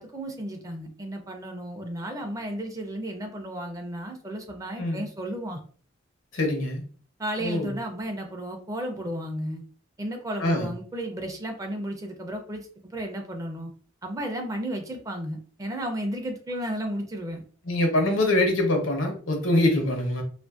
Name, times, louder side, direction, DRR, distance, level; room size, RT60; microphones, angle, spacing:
voice 1, 0.0-5.6 7.2-9.6 10.0-13.7 14.0-17.4, right 1 dB, 15° right, 4 dB, 0.4 m, -33 dB
voice 2, 6.3-6.8 7.4-7.7 10.4-10.7 17.6-20.2, left 1 dB, 85° left, 2 dB, 0.8 m, -24 dB
2.5 x 2.4 x 2.4 m, 0.44 s
head